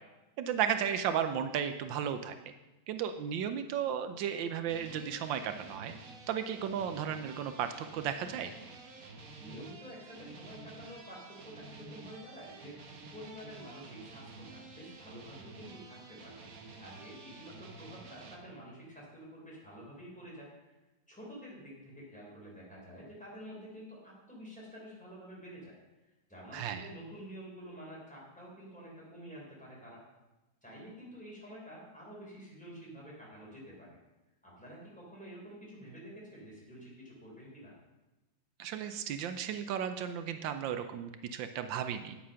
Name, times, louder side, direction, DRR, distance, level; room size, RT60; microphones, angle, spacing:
voice 1, 0.4-2.3 2.9-5.9 6.3-8.5 26.5-26.9 38.6-42.2, right 8 dB, 85° right, 9 dB, 1.4 m, -34 dB
sound 1, 4.7-18.4, right 3 dB, 50° right, 1.5 m, -50 dB
voice 2, 9.4-16.5 16.8-20.7 21.1-25.8 26.3-30.0 30.6-34.0 34.4-37.7, equal, 5° left, -5 dB, 4.2 m, -49 dB
9.6 x 8.5 x 5.6 m, 1.0 s
omnidirectional pair, 2.0 m